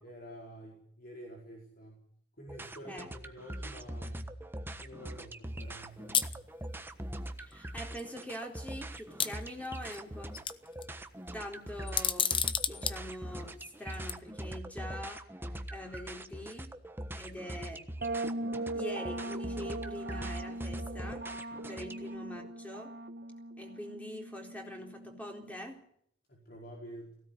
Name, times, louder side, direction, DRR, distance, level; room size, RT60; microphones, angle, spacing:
voice 1, 0.0-2.1 2.4-4.3 4.8-6.3 21.7-21.9 26.3-27.2, equal, 60° left, -1 dB, 5.0 m, -49 dB
sound 1, 2.5-22.1, right 1 dB, 15° right, 1.3 m, -42 dB
sound 2, 6.1-6.4 7.5-7.6 8.0-8.1 9.2-10.0 10.3-10.8 11.9-13.0 13.9-14.1, left 7 dB, 30° left, 1.0 m, -30 dB
voice 2, 7.4-10.4 11.3-12.3 12.7-16.8 17.1-17.8 18.7-22.9 23.6-25.9, left 1 dB, 10° left, 2 dB, 4.0 m, -44 dB
sound 3, 18.0-25.6, right 2 dB, 60° right, 1.5 m, -40 dB
18.5 x 16.5 x 9.6 m, 0.66 s
head